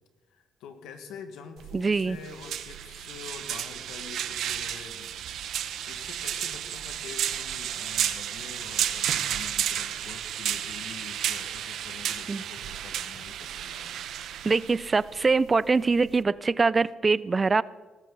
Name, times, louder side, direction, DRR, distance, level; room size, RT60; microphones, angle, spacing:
voice 1, 0.3-13.9, left 6 dB, 90° left, 6 dB, 1.7 m, -46 dB
sound 1, 1.6-16.2, right 10 dB, 75° right, 0.8 m, -32 dB
voice 2, 1.7-2.2 12.3-12.4 14.4-17.6, right 4 dB, 30° right, 19 dB, 0.4 m, -23 dB
18.5 x 14.5 x 3.9 m, 1.3 s
cardioid pair, 90°, 0 cm